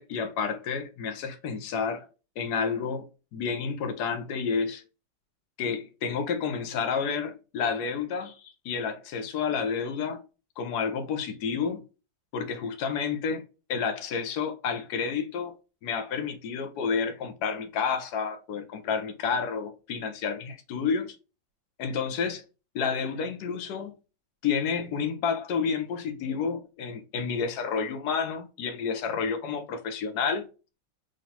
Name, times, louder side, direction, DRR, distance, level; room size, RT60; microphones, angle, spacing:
voice 1, 0.0-2.1 2.4-3.0 3.3-4.8 5.6-10.2 10.6-11.8 12.3-13.4 13.7-15.5 15.8-21.1 21.8-22.4 22.7-23.9 24.4-30.5, left 6 dB, 70° left, 1.1 m, -30 dB
3.7 x 3.2 x 2.7 m
omnidirectional pair, 2.1 m